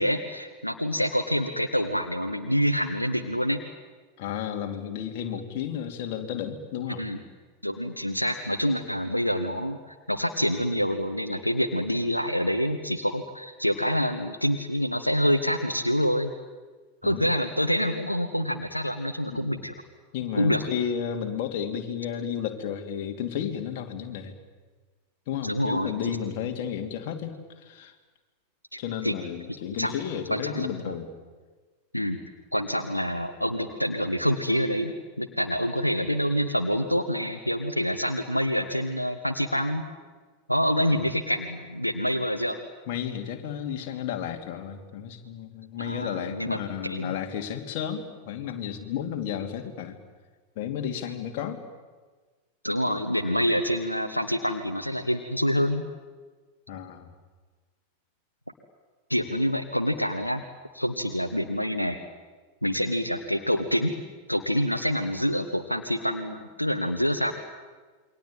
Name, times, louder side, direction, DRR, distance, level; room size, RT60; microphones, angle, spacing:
voice 1, 0.0-3.6 7.0-7.2 7.6-16.3 17.0-19.7 20.3-20.6 25.4-25.9 28.7-29.1 29.8-29.9 30.3-30.9 31.9-32.2 32.5-39.8 40.5-42.6 45.8-47.1 52.6-55.8 59.1-60.4 60.7-62.0 62.6-63.9 64.3-67.4, equal, 90° left, 7 dB, 1.4 m, -26 dB
voice 2, 4.2-7.0 17.0-17.3 19.3-19.4 20.1-24.3 25.3-27.9 28.8-31.1 40.8-41.1 42.9-50.0 50.6-51.6 52.9-53.0 56.7-57.1, left 9 dB, 50° left, 5 dB, 2.9 m, -33 dB
28.5 x 23.0 x 9.1 m, 1.4 s
figure-of-eight pair, 90°, 0 cm